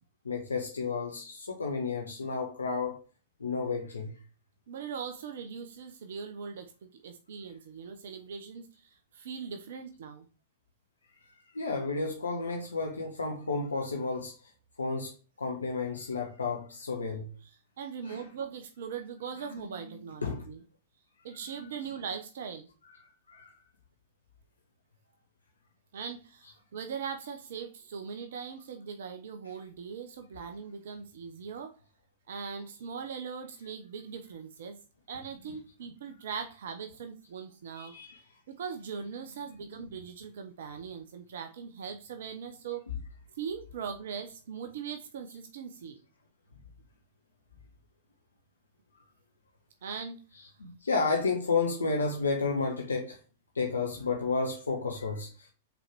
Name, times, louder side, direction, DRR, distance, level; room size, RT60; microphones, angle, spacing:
voice 1, 0.2-3.0 3.4-4.2 11.5-14.3 14.8-17.3 18.0-18.2 19.4-20.4 21.4-21.9 22.9-23.5 36.1-36.2 37.7-38.2 39.1-39.9 42.9-43.0 50.6-53.2 53.5-55.5, left 4 dB, 85° left, 1.2 m, -32 dB
voice 2, 4.7-10.3 17.4-20.6 21.2-22.7 25.9-31.7 32.3-34.8 35.1-37.9 38.5-42.8 43.3-46.0 49.8-50.2, right 6 dB, 65° right, 0.9 m, -40 dB
5.4 x 4.5 x 4.5 m
figure-of-eight pair, 100°, 0 cm